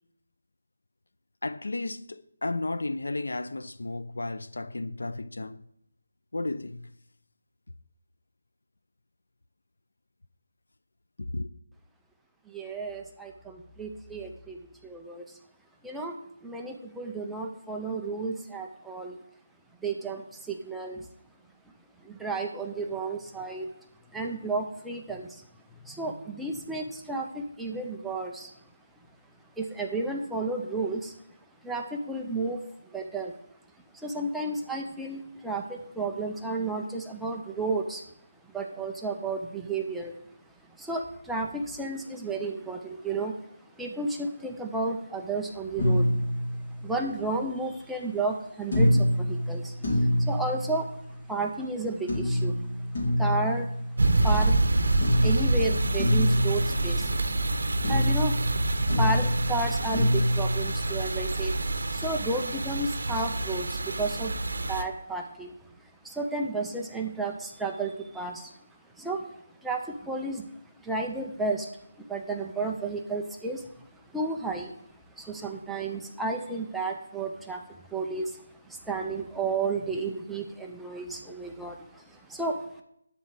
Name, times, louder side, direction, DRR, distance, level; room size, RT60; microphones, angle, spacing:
voice 1, 1.4-5.6 6.3-6.9 11.2-11.5, left 2 dB, 90° left, 0.6 m, -33 dB
voice 2, 12.5-15.2 15.8-16.2 16.4-19.2 19.8-21.1 22.0-23.7 24.1-25.4 25.8-28.5 29.6-31.1 31.6-32.6 32.9-33.3 33.9-38.0 38.5-40.2 40.8-43.5 43.8-46.1 46.8-51.0 51.3-52.6 53.0-53.7 54.2-54.5 55.2-57.3 57.9-58.5 58.8-61.6 61.9-65.6 66.0-68.5 69.0-70.5 70.8-71.7 72.1-74.7 75.2-82.8, right 3 dB, ahead, 0.4 m, -32 dB
sound 1, 45.8-47.3 48.7-51.3 52.1-54.7 55.0-57.6 57.8-61.3, equal, 35° left, 2.5 m, -27 dB
sound 2, 54.0-64.8, right 2 dB, 60° right, 1.1 m, -27 dB
11.0 x 4.2 x 7.9 m
hypercardioid pair, 180°, 0 cm